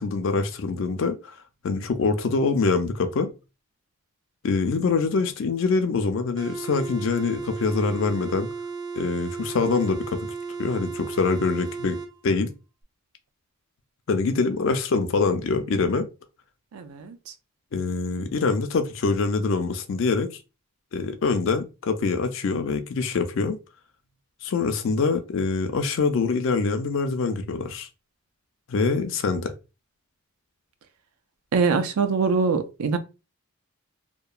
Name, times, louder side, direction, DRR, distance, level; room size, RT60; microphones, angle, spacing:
voice 1, 0.0-1.3 1.6-3.3 4.4-8.5 9.0-10.3 10.6-12.5 14.1-16.1 17.7-20.3 20.9-23.6 24.4-27.9 28.7-29.5, left 4 dB, 60° left, 0.4 m, -24 dB
sound 1, 6.4-12.1, right 5 dB, 20° right, 0.4 m, -34 dB
voice 2, 16.7-17.2 31.5-33.0, right 5 dB, 85° right, 0.4 m, -23 dB
2.9 x 2.2 x 2.3 m
head